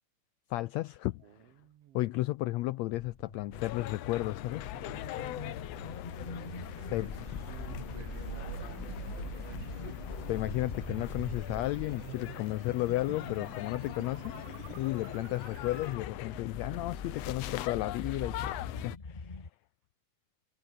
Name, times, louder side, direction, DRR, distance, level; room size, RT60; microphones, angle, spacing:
voice 1, 0.5-1.2 1.9-4.7 6.9-7.1 10.3-14.3 14.7-19.5, left 18 dB, 85° left, 1.5 m, -33 dB
voice 2, 1.2-2.2 6.2-10.0, right 11 dB, 65° right, 1.6 m, -54 dB
sound 1, 3.1-19.5, left 3 dB, 40° left, 0.6 m, -45 dB
sound 2, 3.5-19.0, left 14 dB, 70° left, 1.7 m, -42 dB
sound 3, 3.9-16.0, right 18 dB, 85° right, 2.3 m, -47 dB
omnidirectional pair, 3.6 m